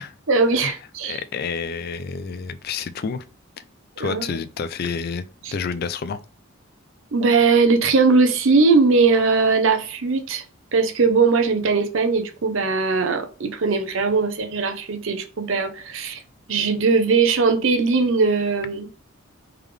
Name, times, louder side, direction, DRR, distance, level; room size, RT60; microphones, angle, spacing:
voice 1, 0.3-1.2 4.0-4.3 5.4-5.5 7.1-10.4 10.7-16.2 16.5-18.9, right 4 dB, 65° right, 0.7 m, -19 dB
voice 2, 1.0-3.2 4.0-5.2 5.5-6.2, left 5 dB, 45° left, 0.3 m, -29 dB
3.6 x 3.4 x 3.2 m
head